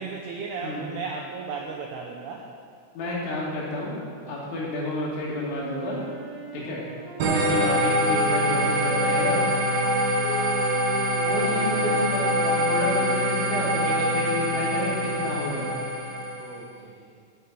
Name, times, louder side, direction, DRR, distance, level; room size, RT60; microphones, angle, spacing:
voice 1, 0.0-2.5 4.2-4.4 6.6-6.7 9.8-10.2 16.4-17.1, right 5 dB, 80° right, 0 dB, 2.3 m, -36 dB
voice 2, 2.9-3.9 4.3-6.0 6.5-6.8 7.3-9.4 11.2-15.7, left 2 dB, 70° left, -5 dB, 4.9 m, -30 dB
Wind instrument woodwind instrument, 5.5-13.5, right 1 dB, 15° right, 3.6 m, -38 dB
sound 1, 7.2-16.6, equal, 60° right, 2.7 m, -24 dB
8.8 x 8.7 x 9.1 m, 2.1 s
omnidirectional pair, 5.7 m